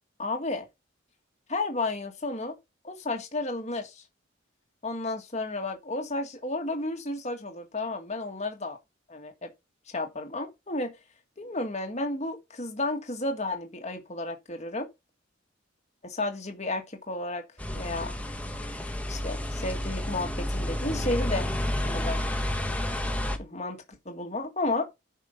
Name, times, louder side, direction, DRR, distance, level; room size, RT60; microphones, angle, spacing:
voice 1, 0.2-0.6 1.5-2.5 2.8-4.0 4.8-8.8 9.1-9.5 9.9-10.9 11.4-14.9 16.0-18.1 19.1-21.5 21.8-22.2 23.4-24.9, left 2 dB, 35° left, 1.8 m, -32 dB
sound 1, 17.6-23.4, left 1 dB, 5° left, 1.3 m, -30 dB
9.9 x 5.6 x 5.2 m
head